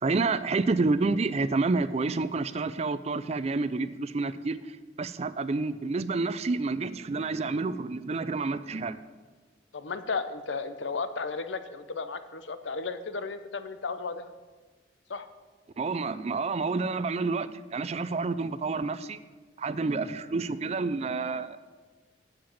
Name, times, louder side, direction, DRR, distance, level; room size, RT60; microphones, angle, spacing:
voice 1, 0.0-4.6 5.0-9.0 15.8-19.2 19.6-21.6, right 3 dB, 35° right, 14 dB, 0.4 m, -29 dB
voice 2, 9.7-14.3 15.1-15.3 20.1-20.2, left 4 dB, 80° left, 10 dB, 0.7 m, -34 dB
7.6 x 7.6 x 8.5 m, 1.3 s
head